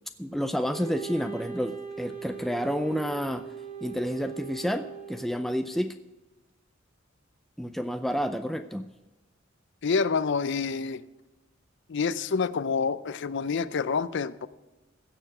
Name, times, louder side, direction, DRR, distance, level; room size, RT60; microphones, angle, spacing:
voice 1, 0.2-3.5 3.8-5.9 7.6-8.9, equal, ahead, 7 dB, 0.4 m, -30 dB
Wind instrument woodwind instrument, 0.7-5.8, right 6 dB, 45° right, 2.4 m, -40 dB
voice 2, 9.8-11.0 11.9-14.5, left 5 dB, 60° left, 15 dB, 0.5 m, -27 dB
16.5 x 6.8 x 6.1 m, 1.1 s
head